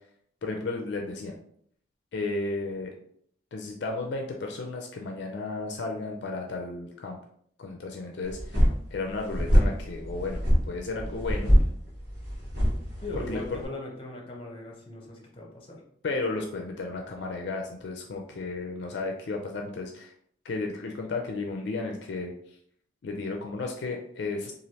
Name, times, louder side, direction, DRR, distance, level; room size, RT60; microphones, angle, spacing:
voice 1, 0.4-1.4 2.1-2.9 3.5-7.2 7.6-8.6 8.9-11.6 13.1-13.6 16.0-20.1 20.4-22.3 23.0-24.5, left 3 dB, 65° left, 2 dB, 0.4 m, -33 dB
sound 1, 8.3-13.7, equal, 60° right, 1.3 m, -25 dB
voice 2, 13.0-15.8, left 2 dB, 30° left, -1 dB, 0.7 m, -39 dB
3.1 x 2.4 x 2.7 m, 0.65 s
head